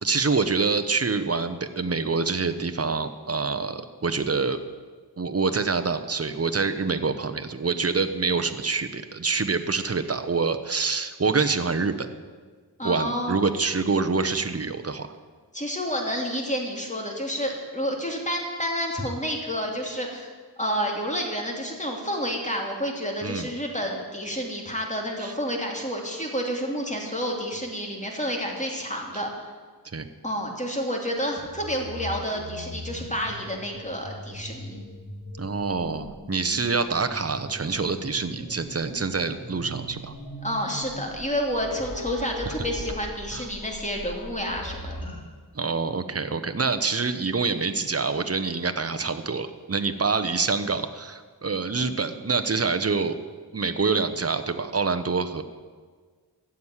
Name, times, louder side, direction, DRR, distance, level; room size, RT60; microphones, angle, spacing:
voice 1, 0.0-4.6 5.2-12.1 12.8-15.1 23.2-23.5 25.2-25.3 29.9-30.1 35.4-40.1 42.5-42.6 43.3-43.5 45.5-53.2 53.5-55.4, right 4 dB, 35° right, 9 dB, 1.0 m, -26 dB
voice 2, 12.8-13.4 15.5-20.3 20.6-29.5 30.2-34.8 40.4-45.1, equal, 15° left, 0 dB, 2.8 m, -29 dB
sound 1, 31.4-45.2, equal, 55° left, 4.8 m, -40 dB
14.5 x 7.4 x 9.8 m, 1.5 s
wide cardioid pair, 65°, 41 cm